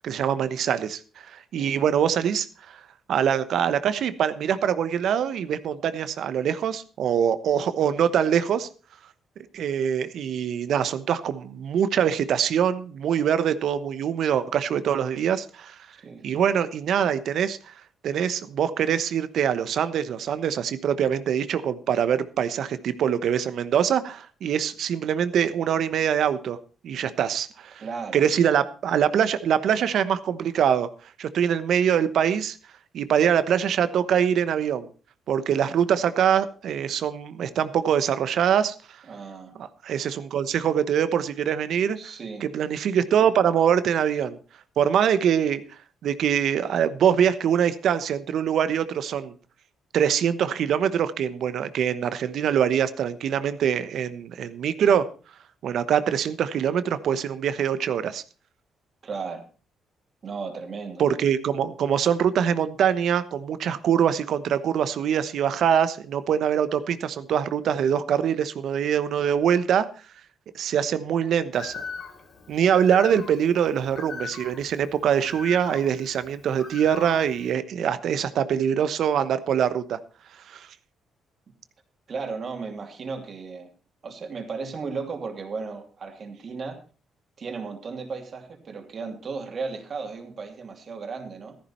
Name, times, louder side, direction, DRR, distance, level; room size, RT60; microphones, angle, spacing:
voice 1, 0.0-2.8 3.1-8.7 9.5-15.8 16.2-17.7 18.0-26.6 26.8-27.8 28.1-30.9 31.2-32.6 32.9-34.9 35.3-39.0 39.6-42.0 42.4-44.4 44.8-45.6 46.0-49.3 49.9-55.0 55.6-58.2 61.0-69.9 70.5-71.9 72.5-80.0 80.5-80.7, right 8 dB, 70° right, 13 dB, 1.0 m, -24 dB
voice 2, 27.8-28.2 39.1-39.5 42.0-42.4 59.0-59.4 60.2-61.0 82.1-83.7 84.0-86.8 87.4-91.6, right 4 dB, 45° right, 4 dB, 2.8 m, -35 dB
Bird, 71.5-77.5, left 5 dB, 55° left, 3.3 m, -40 dB
13.5 x 11.5 x 4.4 m, 0.36 s
cardioid pair, 90°, 0 cm